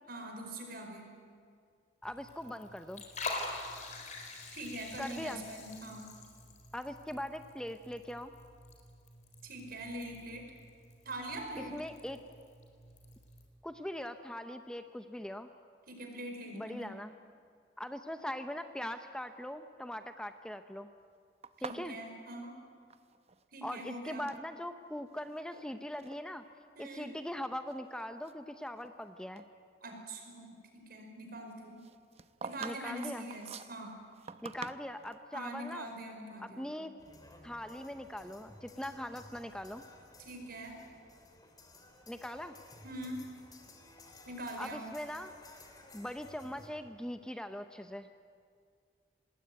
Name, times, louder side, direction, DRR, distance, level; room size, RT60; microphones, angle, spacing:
voice 1, 0.1-1.1 4.5-6.1 9.4-10.5 11.0-11.8 15.9-16.9 21.7-22.6 23.5-24.3 26.7-27.1 29.8-31.8 32.4-34.0 35.3-36.7 40.2-40.8 42.8-43.2 44.2-44.9, right 1 dB, 55° right, 3 dB, 5.1 m, -43 dB
Liquid, 2.0-13.5, left 3 dB, 40° left, 4.2 m, -46 dB
voice 2, 2.0-3.0 5.0-5.4 6.7-8.3 11.7-12.2 13.6-15.5 16.5-17.1 17.8-20.9 21.6-22.0 23.6-26.4 26.8-29.4 32.6-33.2 34.4-35.9 36.4-36.9 37.4-39.8 42.1-42.5 44.6-45.3 45.9-48.1, left 1 dB, 5° left, 8 dB, 0.7 m, -41 dB
sound 1, 21.4-23.4 23.7-24.5 25.1-25.7 26.0-26.2 26.9-27.0 27.5-29.0 29.4-29.5 31.8-35.2, right 5 dB, 35° right, 0.8 m, -47 dB
sound 2, 37.0-46.7, left 2 dB, 20° left, 3.0 m, -56 dB
25.5 x 20.0 x 9.3 m, 2.2 s
head